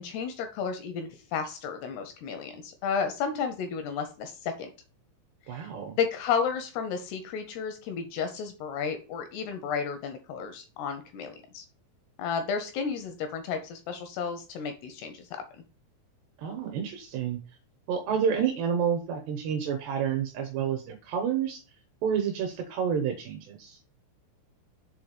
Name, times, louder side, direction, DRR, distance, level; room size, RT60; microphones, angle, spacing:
voice 1, 0.0-4.7 5.5-5.7 6.0-11.6 12.2-15.3, left 6 dB, 80° left, 6 dB, 2.4 m, -32 dB
voice 2, 5.5-6.0 16.4-17.4 17.9-21.6 22.0-23.8, right 7 dB, 75° right, 4 dB, 2.7 m, -29 dB
7.4 x 3.8 x 6.5 m, 0.34 s
omnidirectional pair, 5.8 m